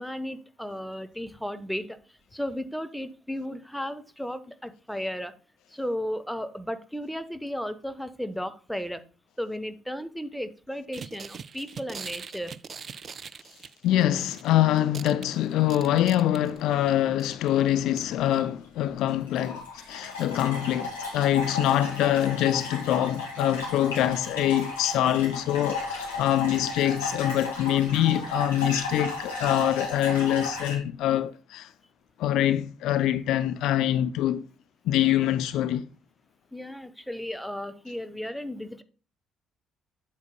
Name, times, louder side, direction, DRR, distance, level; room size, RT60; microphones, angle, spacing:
voice 1, 0.0-2.0 2.3-5.3 5.7-9.0 9.4-12.5 26.4-26.5 36.5-38.8, equal, 5° left, 0.9 m, -34 dB
sound 1, 10.9-14.5 14.8-16.7 17.2-17.5 18.0-18.1 18.3-18.4, right 6 dB, 40° right, 0.4 m, -42 dB
voice 2, 13.8-31.7 32.2-34.4 34.9-35.8, left 12 dB, 60° left, 0.3 m, -24 dB
water gurgling in the bath overflow hole full circle, 18.4-18.7 19.1-30.8, left 3 dB, 80° left, 2.0 m, -34 dB
8.4 x 8.2 x 2.2 m
figure-of-eight pair, 45°, 0 cm